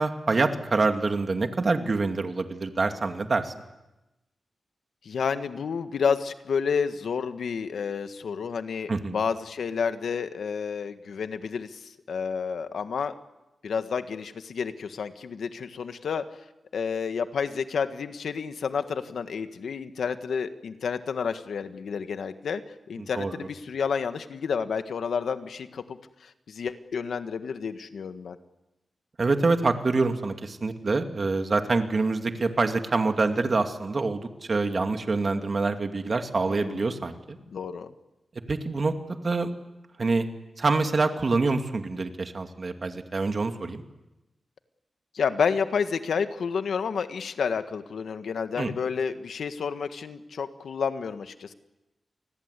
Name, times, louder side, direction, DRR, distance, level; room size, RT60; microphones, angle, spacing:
voice 1, 0.0-3.5 8.9-9.2 23.0-23.5 29.2-37.4 38.5-39.5 40.0-40.2 40.6-43.8 48.6-48.7, right 3 dB, 45° right, 6 dB, 2.4 m, -26 dB
voice 2, 5.0-13.1 13.6-16.2 16.7-22.6 22.9-28.4 36.5-36.8 37.5-37.9 45.1-51.5, left 6 dB, 80° left, 9 dB, 1.6 m, -30 dB
28.5 x 21.0 x 8.3 m, 0.98 s
wide cardioid pair, 100°, 0 cm